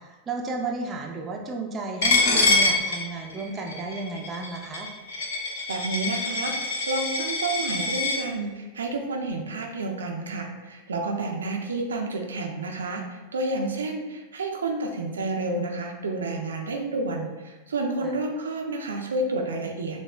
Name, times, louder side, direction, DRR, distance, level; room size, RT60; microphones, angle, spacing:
voice 1, 0.0-4.9 18.0-18.1, right 3 dB, 25° right, 1 dB, 0.5 m, -33 dB
Coin (dropping), 2.0-8.2, left 2 dB, 60° left, 0.7 m, -25 dB
voice 2, 5.7-20.0, right 2 dB, 70° right, 1 dB, 0.5 m, -30 dB
6.8 x 2.3 x 2.2 m, 1.2 s
figure-of-eight pair, 90°, 0 cm